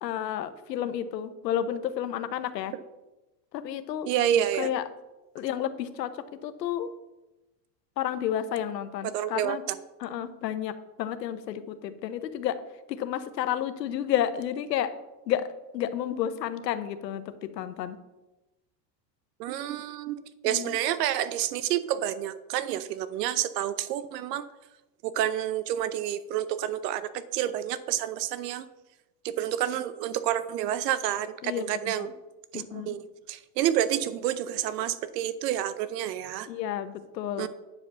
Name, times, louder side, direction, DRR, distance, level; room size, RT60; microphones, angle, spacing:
voice 1, 0.0-2.7 3.5-4.1 4.6-4.8 5.3-6.1 6.4-6.9 8.0-9.6 10.0-12.5 12.9-14.9 15.3-15.5 15.7-18.0 20.4-20.8 31.4-32.1 32.5-33.0 36.5-37.5, left 10 dB, 90° left, 11 dB, 0.9 m, -31 dB
voice 2, 4.0-4.7 9.0-9.6 19.4-24.4 25.0-28.7 29.2-32.1 32.5-33.0 33.3-36.5 37.4-37.5, right 11 dB, 80° right, 14 dB, 0.8 m, -29 dB
9.2 x 5.1 x 6.9 m, 1.0 s
hypercardioid pair, 85°, 48 cm